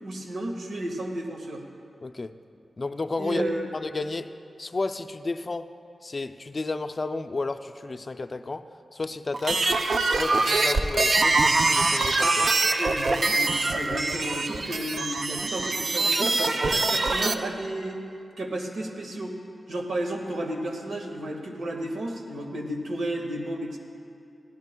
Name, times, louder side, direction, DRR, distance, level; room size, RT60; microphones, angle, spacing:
voice 1, 0.0-1.6 3.2-3.7 12.8-18.0 18.4-19.3 19.7-23.8, right 1 dB, 80° right, 2 dB, 1.6 m, -32 dB
voice 2, 2.0-2.3 2.8-3.4 3.7-4.3 4.6-5.7 6.0-9.6 10.1-12.5 13.9-14.0, left 3 dB, 40° left, 9 dB, 0.4 m, -32 dB
sound 1, 9.3-17.3, right 3 dB, 50° right, 0.6 m, -24 dB
21.5 x 16.5 x 2.3 m, 2.5 s
wide cardioid pair, 100°, 0 cm